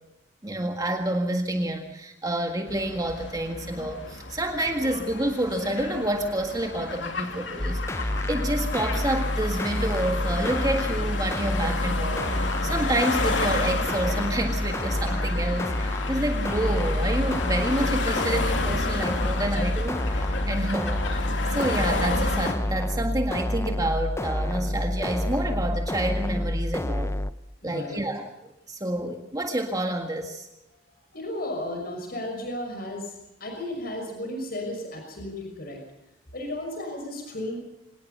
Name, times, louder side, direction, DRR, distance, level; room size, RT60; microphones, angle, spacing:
voice 1, 0.4-21.3 21.5-27.2 27.6-30.5, right 1 dB, 20° right, 4 dB, 1.8 m, -28 dB
sound 1, 2.7-22.5, left 3 dB, 85° left, 2.7 m, -31 dB
sound 2, 7.6-27.3, left 1 dB, 15° left, 0.7 m, -28 dB
voice 2, 27.6-28.0 31.1-33.1 33.4-35.8 36.3-37.6, left 1 dB, 55° left, 3 dB, 6.0 m, -34 dB
25.5 x 19.0 x 5.5 m, 0.89 s
head